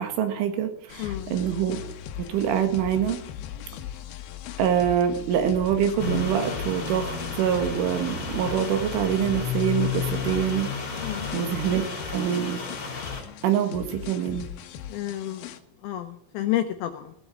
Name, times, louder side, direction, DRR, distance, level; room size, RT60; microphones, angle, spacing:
voice 1, 0.0-1.8 2.2-3.2 4.6-11.8 12.1-12.6 13.4-14.5, right 9 dB, 85° right, 7 dB, 4.3 m, -25 dB
sound 1, 0.9-15.6, left 9 dB, 70° left, 2.4 m, -39 dB
voice 2, 1.0-1.4 11.0-11.3 14.9-15.5 15.8-17.1, left 13 dB, 90° left, 7 dB, 2.2 m, -30 dB
sound 2, 6.0-13.2, left 5 dB, 30° left, 3.2 m, -32 dB
17.0 x 8.1 x 7.5 m, 0.70 s
omnidirectional pair, 5.6 m